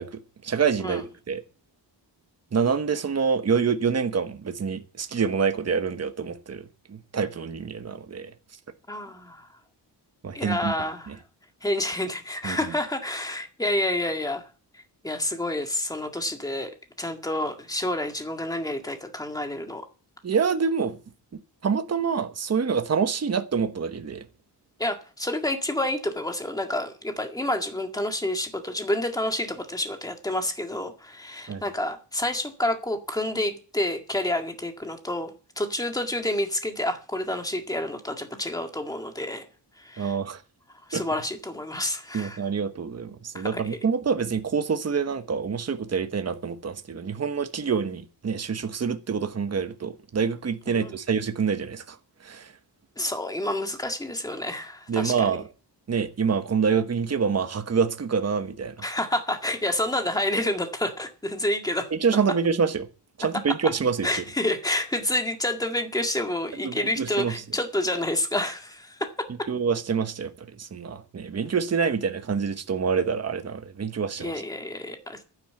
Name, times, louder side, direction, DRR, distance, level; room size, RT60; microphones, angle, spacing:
voice 1, 0.0-1.4 2.5-8.3 10.2-10.7 11.1-11.2 12.4-12.6 20.2-21.0 21.6-24.2 31.5-31.6 40.0-40.4 40.9-41.0 42.1-52.0 52.2-52.5 54.9-55.4 55.9-58.7 61.9-62.9 63.2-64.2 66.6-67.3 69.5-74.3, right 6 dB, 35° right, 1.1 m, -26 dB
voice 2, 8.9-9.5 10.3-11.2 11.6-14.4 14.7-19.9 24.8-39.5 39.8-40.2 40.9-42.4 43.3-43.8 50.7-50.9 53.0-55.4 58.8-61.9 63.5-63.7 64.0-69.1 74.2-75.2, left 1 dB, 10° left, 1.9 m, -29 dB
12.0 x 9.8 x 7.7 m
wide cardioid pair, 175°, 42 cm